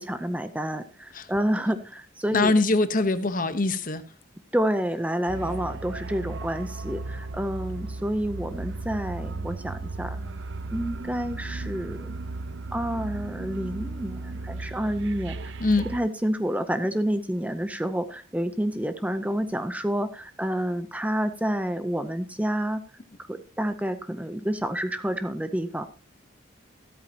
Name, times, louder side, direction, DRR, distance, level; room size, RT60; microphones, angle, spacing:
voice 1, 0.0-2.5 4.5-10.3 10.7-12.1 12.7-15.5 15.8-22.8 23.2-25.9, equal, 5° right, 0.6 m, -29 dB
voice 2, 2.3-4.0 15.6-15.8, left 2 dB, 40° left, 1.0 m, -22 dB
sound 1, 5.3-16.0, right 3 dB, 60° right, 0.5 m, -35 dB
14.0 x 12.5 x 2.8 m
head